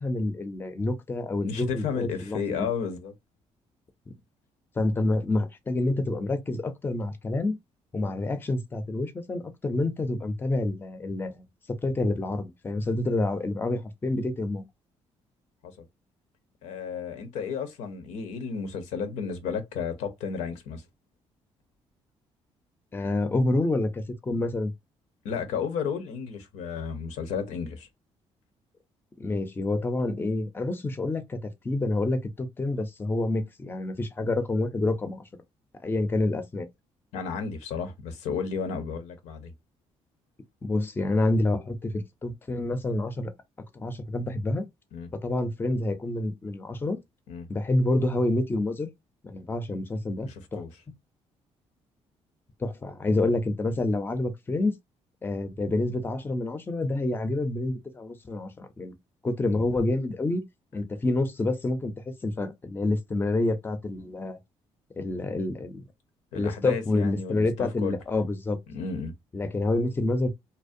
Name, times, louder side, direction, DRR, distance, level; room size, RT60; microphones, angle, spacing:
voice 1, 0.0-2.7 4.8-7.6 7.9-11.4 11.8-14.6 22.9-24.7 29.2-31.4 31.6-35.2 35.8-36.7 40.6-43.3 43.7-44.6 45.2-47.0 47.5-48.9 49.2-50.6 52.6-54.7 55.2-58.9 59.2-60.4 60.7-61.9 62.2-64.4 65.0-65.8 66.3-68.6 69.3-70.3, left 2 dB, 20° left, 0.5 m, -28 dB
voice 2, 1.4-3.1 15.6-15.8 16.6-20.8 25.2-27.9 37.1-39.5 44.9-45.1 47.3-47.5 50.2-50.7 59.5-59.6 66.3-68.0 68.7-69.1, left 6 dB, 90° left, 0.7 m, -33 dB
2.5 x 2.0 x 2.5 m
cardioid pair, 95°, 12 cm